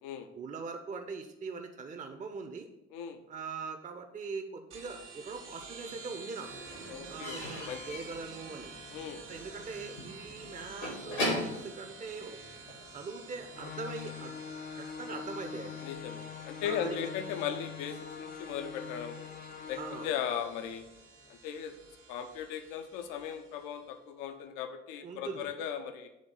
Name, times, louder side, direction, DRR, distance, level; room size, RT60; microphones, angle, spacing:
voice 1, 0.4-2.7 3.3-6.6 7.1-8.7 9.3-12.4 12.9-14.4 14.8-15.8 16.6-17.0 19.8-20.1 25.0-25.5, right 4 dB, 20° right, 6 dB, 0.6 m, -42 dB
sound 1, 4.7-23.9, right 3 dB, 70° right, 1.1 m, -50 dB
Slam / Squeak / Wood, 5.0-5.8 6.1-12.8, left 1 dB, 85° left, 2.1 m, -39 dB
voice 2, 6.9-7.8 8.9-9.2 15.8-19.2 19.7-20.9 21.3-21.7 22.1-26.1, left 8 dB, 65° left, 8 dB, 0.6 m, -37 dB
sound 2, 13.5-20.1, left 7 dB, 25° left, 0.4 m, -43 dB
6.4 x 3.5 x 5.3 m, 0.91 s
figure-of-eight pair, 40°, 36 cm